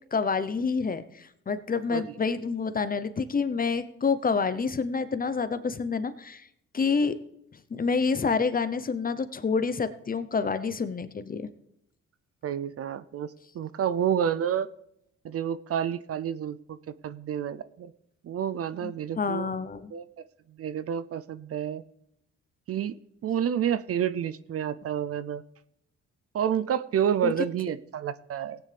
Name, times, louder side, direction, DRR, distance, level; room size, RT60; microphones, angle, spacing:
voice 1, 0.1-6.4 6.7-7.2 7.7-11.5 18.8-19.9 27.2-27.3, left 5 dB, 30° left, 12 dB, 0.8 m, -28 dB
voice 2, 12.4-14.7 15.2-16.8 17.0-17.9 18.2-19.5 19.9-20.1 20.6-21.8 22.7-22.9 23.2-25.4 26.3-28.6, right 9 dB, 50° right, 15 dB, 0.5 m, -29 dB
17.0 x 9.1 x 3.4 m, 0.78 s
cardioid pair, 90°, 30 cm